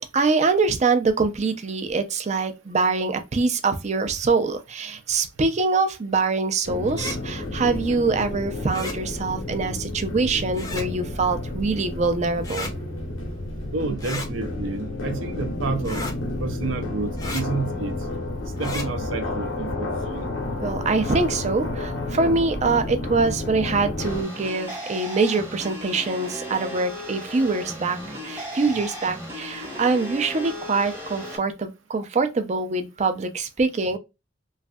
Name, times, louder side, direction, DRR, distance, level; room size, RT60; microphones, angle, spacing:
voice 1, 0.1-12.7 20.6-28.0 28.2-34.0, right 4 dB, 35° right, 0.5 m, -24 dB
sound 1, 6.7-24.2, left 2 dB, 85° left, 0.9 m, -31 dB
sound 2, 6.9-7.2 8.7-9.0 10.5-10.9 12.4-12.7 14.0-14.3 15.8-16.2 17.2-17.4 18.6-18.9, left 2 dB, 20° left, 0.6 m, -33 dB
voice 2, 13.7-16.0 16.4-17.9 18.6-20.3, right 3 dB, 80° right, 0.6 m, -30 dB
sound 3, 24.0-31.4, equal, 10° right, 0.9 m, -35 dB
3.2 x 2.6 x 2.3 m
head